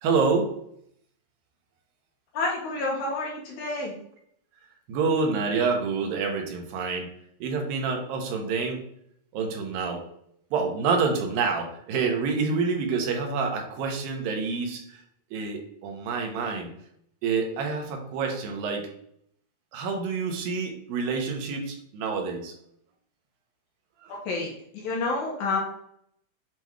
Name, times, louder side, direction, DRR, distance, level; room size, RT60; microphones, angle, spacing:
voice 1, 0.0-0.5 4.9-7.1 7.4-8.8 9.3-10.0 10.5-15.0 15.3-16.7 17.2-18.9 19.7-22.5 24.0-24.1, right 4 dB, 85° right, 3 dB, 2.6 m, -27 dB
voice 2, 2.3-3.9 24.1-25.6, left 3 dB, 75° left, -1 dB, 1.9 m, -29 dB
7.5 x 3.1 x 2.3 m, 0.69 s
omnidirectional pair, 4.0 m